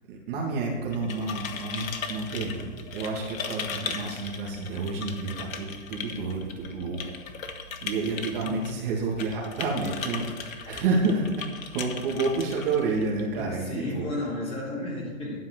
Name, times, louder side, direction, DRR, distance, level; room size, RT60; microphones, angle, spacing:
voice 1, 0.1-7.1 7.8-14.1, right 3 dB, 40° right, -1 dB, 2.4 m, -29 dB
sound 1, 0.8-13.4, left 5 dB, 85° left, 1.6 m, -38 dB
voice 2, 8.4-8.8 13.4-15.4, left 1 dB, 15° left, -6 dB, 4.0 m, -33 dB
11.5 x 5.6 x 8.0 m, 1.3 s
hypercardioid pair, 150°, 39 cm